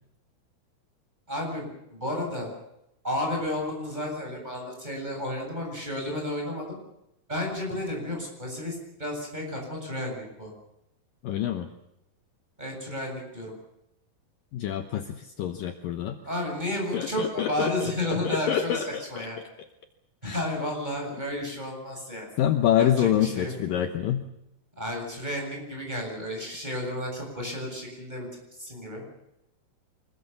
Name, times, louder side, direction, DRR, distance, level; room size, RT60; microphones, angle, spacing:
voice 1, 1.3-2.5 3.0-6.8 7.3-10.5 12.6-13.5 16.2-19.4 20.2-22.3 22.8-23.5 24.8-28.3 28.6-29.0, left 1 dB, 10° right, 0 dB, 7.5 m, -32 dB
voice 2, 11.2-11.7 14.5-16.2 16.9-17.9 18.2-19.5 20.2-20.4 22.4-24.2, left 10 dB, 70° left, 7 dB, 2.5 m, -26 dB
25.0 x 22.0 x 7.1 m, 0.85 s
omnidirectional pair, 4.6 m